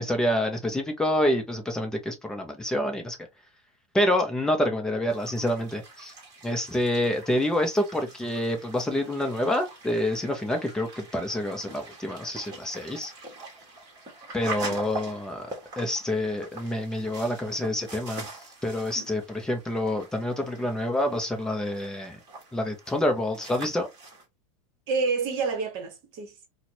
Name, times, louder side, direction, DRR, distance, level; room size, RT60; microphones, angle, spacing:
voice 1, 0.0-3.2 3.9-6.1 6.4-13.1 14.3-15.5 15.8-18.3 18.6-22.2 22.5-23.9, left 1 dB, 5° left, 0.4 m, -27 dB
sound 1, 5.1-24.2, right 3 dB, 20° right, 1.2 m, -43 dB
voice 2, 24.9-26.5, right 4 dB, 40° right, 1.0 m, -29 dB
4.2 x 2.0 x 2.6 m
supercardioid pair, 175°, 18 cm